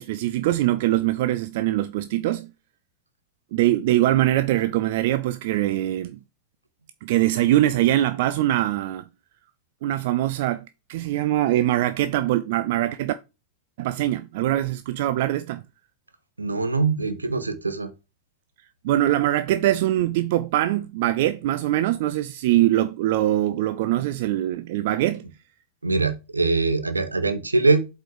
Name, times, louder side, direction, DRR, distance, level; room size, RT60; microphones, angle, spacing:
voice 1, 0.0-2.5 3.5-6.2 7.0-9.0 9.8-13.1 13.8-15.6 18.8-25.2, right 14 dB, 50° right, 0.4 m, -23 dB
voice 2, 16.4-17.9 25.8-27.9, right 3 dB, 80° right, 1.1 m, -23 dB
7.7 x 4.6 x 4.8 m
figure-of-eight pair, 90°, 0 cm